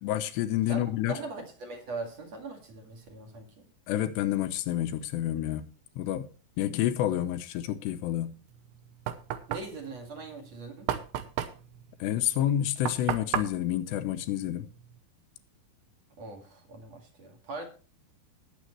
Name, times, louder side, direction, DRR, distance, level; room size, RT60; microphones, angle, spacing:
voice 1, 0.0-1.1 3.9-5.7 6.0-6.3 6.6-8.3 12.0-14.7, left 12 dB, 75° left, 2.6 m, -29 dB
voice 2, 1.1-3.5 9.5-10.9 16.2-17.6, right 3 dB, 45° right, 2.4 m, -40 dB
Knock, 8.5-15.0, right 11 dB, 80° right, 2.5 m, -35 dB
20.0 x 7.6 x 3.2 m
omnidirectional pair, 5.6 m